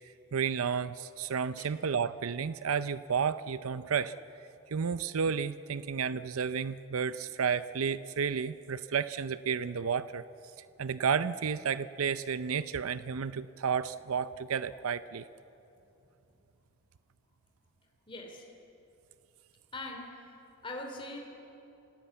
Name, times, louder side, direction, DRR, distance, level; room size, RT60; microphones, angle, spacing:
voice 1, 0.3-4.2 4.7-10.2 10.8-15.3, right 6 dB, 85° right, 14 dB, 0.5 m, -32 dB
voice 2, 18.1-18.5 19.7-20.1 20.6-21.2, left 2 dB, 25° left, 1 dB, 2.9 m, -41 dB
28.5 x 17.5 x 8.4 m, 2.9 s
head